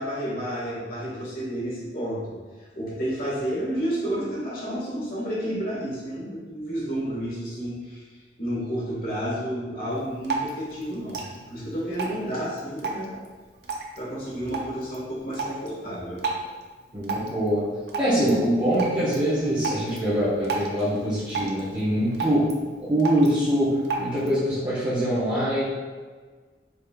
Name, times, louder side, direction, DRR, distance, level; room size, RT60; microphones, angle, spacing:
voice 1, 0.0-2.4 2.8-8.0 8.4-11.2 11.5-13.1 13.9-16.2, equal, 55° left, -7 dB, 1.4 m, -31 dB
Drip, 9.9-24.4, right 3 dB, 65° right, 0.5 m, -35 dB
voice 2, 16.9-17.7 18.0-22.5 22.9-25.6, equal, 25° right, -14 dB, 1.1 m, -23 dB
4.8 x 3.3 x 2.3 m, 1.4 s
head